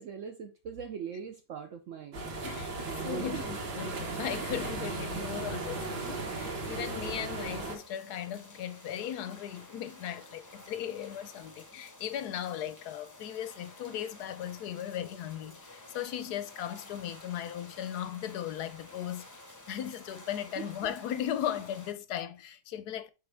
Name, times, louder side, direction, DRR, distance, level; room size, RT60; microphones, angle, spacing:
voice 1, 0.0-2.2 2.9-3.6 20.6-20.7, right 7 dB, 85° right, 0.6 m, -40 dB
sound 1, 2.1-7.8, right 3 dB, 60° right, 2.1 m, -36 dB
voice 2, 2.4-2.8 3.0-19.3 19.7-23.1, left 10 dB, 70° left, 1.0 m, -37 dB
sound 2, 2.5-21.9, left 2 dB, 25° left, 0.4 m, -52 dB
6.7 x 4.3 x 3.4 m
omnidirectional pair, 2.1 m